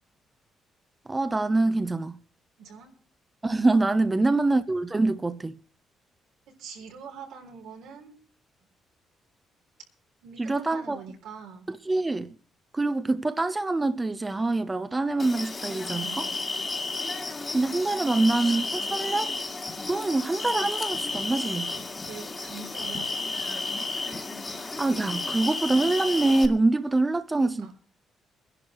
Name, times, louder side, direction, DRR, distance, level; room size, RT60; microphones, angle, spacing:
voice 1, 1.1-2.2 3.4-5.6 10.4-11.0 11.7-12.3 12.7-16.3 17.5-19.3 19.9-21.7 24.6-27.7, right 2 dB, 20° right, 0.9 m, -25 dB
voice 2, 2.6-2.9 4.1-4.4 6.5-8.2 10.2-11.7 15.8-16.4 18.1-18.3 22.1-23.7 27.4-27.7, right 6 dB, 85° right, 3.7 m, -44 dB
sound 1, 15.2-26.5, left 3 dB, 25° left, 2.1 m, -32 dB
23.5 x 11.0 x 3.2 m
cardioid pair, 90°, 0 cm